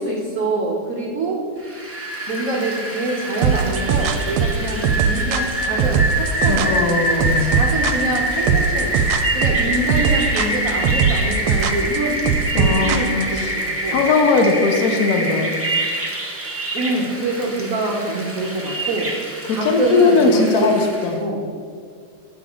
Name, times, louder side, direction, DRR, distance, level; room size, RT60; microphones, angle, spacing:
voice 1, 0.0-1.4 2.3-6.7 7.2-8.9 9.3-12.2 12.5-14.0 16.7-19.1 19.5-20.7 21.2-21.4, right 2 dB, 60° right, -2 dB, 0.9 m, -25 dB
Rain, 1.6-21.1, right 1 dB, 15° right, 0.4 m, -25 dB
sound 1, 3.4-13.5, right 7 dB, 80° right, 1.4 m, -20 dB
voice 2, 6.5-7.6 12.5-13.6 13.9-15.5 19.4-21.2, left 4 dB, 75° left, 3 dB, 0.8 m, -19 dB
8.7 x 3.7 x 6.6 m, 2.2 s
omnidirectional pair, 2.4 m